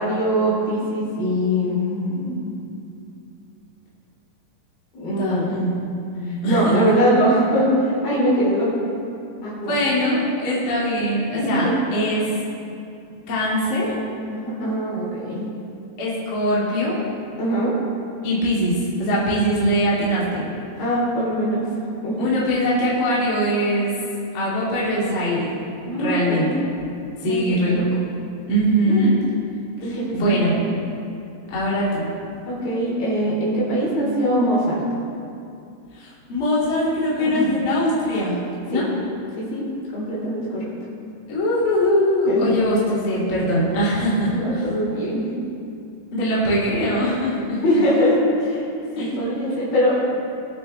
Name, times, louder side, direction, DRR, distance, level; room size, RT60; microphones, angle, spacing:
voice 1, 0.0-2.6 4.9-5.5 6.2-8.8 9.4-9.8 11.3-11.7 14.3-15.5 17.4-17.8 20.8-21.7 22.0-22.3 25.8-26.5 27.3-27.8 28.9-29.1 29.8-30.5 32.5-34.8 37.2-37.5 38.7-38.9 39.4-39.7 39.9-40.7 42.3-42.7 44.3-45.4 47.6-48.6 48.9-50.2, equal, 60° left, -6 dB, 5.0 m, -22 dB
voice 2, 5.2-5.7 6.1-6.7 9.7-12.3 13.3-13.9 16.0-17.0 18.2-20.5 22.2-23.9 24.3-25.5 26.0-26.5 27.2-27.8 28.5-29.2 29.8-30.5 31.5-32.1 35.9-38.4 38.6-38.9 41.3-44.3 46.1-47.6 49.0-49.1, equal, 35° left, -8 dB, 2.6 m, -22 dB
21.0 x 8.7 x 3.3 m, 2.6 s
omnidirectional pair, 4.8 m